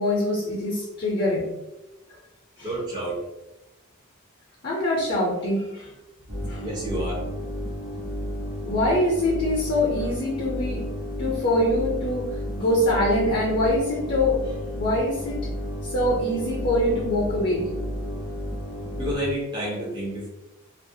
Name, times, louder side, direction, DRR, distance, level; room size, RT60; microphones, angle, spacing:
voice 1, 0.0-1.5 2.6-2.7 4.6-5.9 6.5-6.6 8.7-10.9 11.2-15.4 15.8-17.7, left 1 dB, 45° left, -3 dB, 0.6 m, -24 dB
voice 2, 2.6-3.2 6.6-7.2 19.0-20.3, right 1 dB, 20° right, -6 dB, 0.5 m, -29 dB
electrical hum G slightly sharp, 6.3-19.1, equal, 85° right, 0.9 m, -32 dB
2.3 x 2.0 x 2.6 m, 0.98 s
head